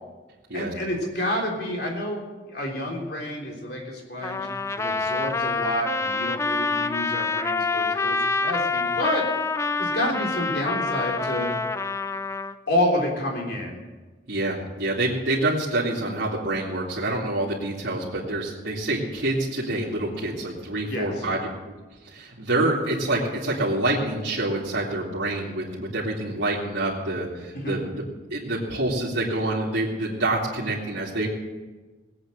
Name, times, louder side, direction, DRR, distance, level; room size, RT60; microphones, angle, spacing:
voice 1, 0.5-4.5 4.8-9.2 9.8-11.5 12.7-13.8 20.9-21.1 27.5-27.8, left 1 dB, 60° left, 0 dB, 3.6 m, -29 dB
Trumpet, 4.2-12.5, left 3 dB, 15° left, 0.4 m, -27 dB
voice 2, 14.3-21.4 22.0-28.0 28.3-31.3, right 2 dB, 90° right, -6 dB, 2.6 m, -27 dB
19.0 x 8.9 x 6.6 m, 1.3 s
head